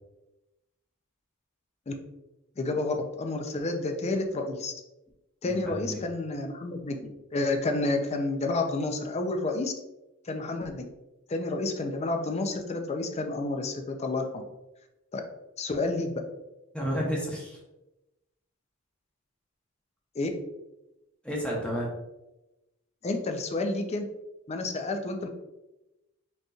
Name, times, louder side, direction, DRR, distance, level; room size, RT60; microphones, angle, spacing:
voice 1, 2.6-4.7 5.4-9.7 10.3-10.9 11.3-14.4 15.1-15.2 15.6-16.1 20.2-20.3 23.0-24.1 24.5-25.3, left 2 dB, 30° left, 5 dB, 0.5 m, -30 dB
voice 2, 5.4-6.0 16.7-17.6 21.2-21.9, equal, 5° left, -4 dB, 0.8 m, -31 dB
5.2 x 2.9 x 2.3 m, 0.97 s
head